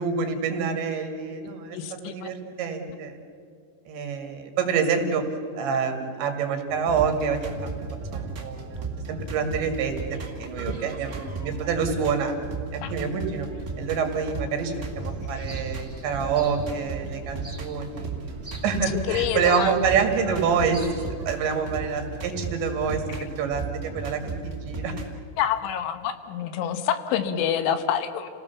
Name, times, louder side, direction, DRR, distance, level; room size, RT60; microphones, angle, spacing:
voice 1, 0.0-1.8 2.0-3.2 3.9-5.2 5.6-7.8 8.1-10.0 10.4-12.3 12.7-13.5 13.8-18.3 18.6-20.9 21.3-23.0 23.4-25.0, right 6 dB, 70° right, 5 dB, 4.3 m, -27 dB
voice 2, 1.6-2.3 10.7-10.8 12.8-12.9 19.1-19.7 25.4-28.3, left 9 dB, 85° left, 10 dB, 3.6 m, -27 dB
sound 1, 6.7-25.1, right 3 dB, 40° right, 1.3 m, -35 dB
sound 2, 14.7-21.1, equal, 5° right, 3.4 m, -43 dB
29.0 x 17.5 x 7.0 m, 2.4 s
omnidirectional pair, 5.5 m